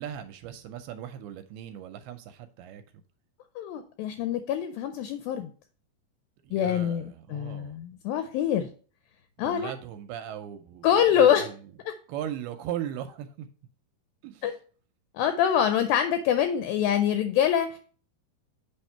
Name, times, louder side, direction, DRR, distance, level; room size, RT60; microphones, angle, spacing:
voice 1, 0.0-2.8 6.4-7.8 9.4-11.6 12.1-13.5 14.2-14.6, right 10 dB, 85° right, 2.4 m, -38 dB
voice 2, 3.6-5.5 6.5-8.7 9.4-9.7 10.8-11.5 11.9-12.0 14.4-14.6 15.2-17.8, left 9 dB, 85° left, 2.1 m, -25 dB
8.2 x 3.5 x 4.4 m
omnidirectional pair, 4.6 m